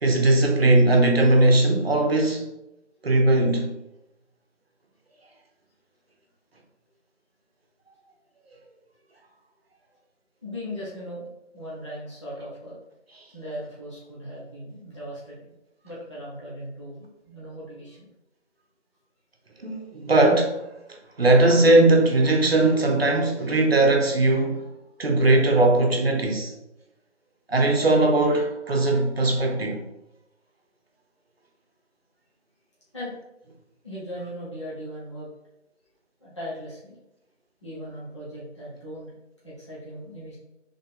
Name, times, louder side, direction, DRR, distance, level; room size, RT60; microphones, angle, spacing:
voice 1, 0.0-2.5 3.0-3.7 19.6-20.7 21.2-24.6 25.0-26.5 27.5-29.9, right 2 dB, 55° right, 0.9 m, -19 dB
voice 2, 10.4-11.3 11.5-12.8 13.3-15.4 15.8-18.1 19.9-20.0 32.9-33.1 33.8-35.3 36.2-37.0 37.6-39.1 39.4-40.4, equal, 25° left, 1.0 m, -38 dB
4.1 x 3.6 x 3.6 m
figure-of-eight pair, 170°, 36 cm